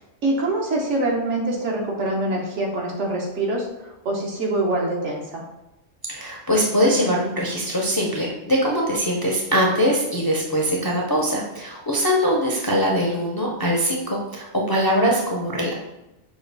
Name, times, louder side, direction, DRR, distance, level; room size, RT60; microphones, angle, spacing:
voice 1, 0.0-5.4, right 2 dB, 85° right, -1 dB, 1.3 m, -25 dB
voice 2, 6.1-15.7, equal, 35° left, -2 dB, 0.4 m, -22 dB
5.4 x 2.4 x 3.3 m, 0.94 s
omnidirectional pair, 1.2 m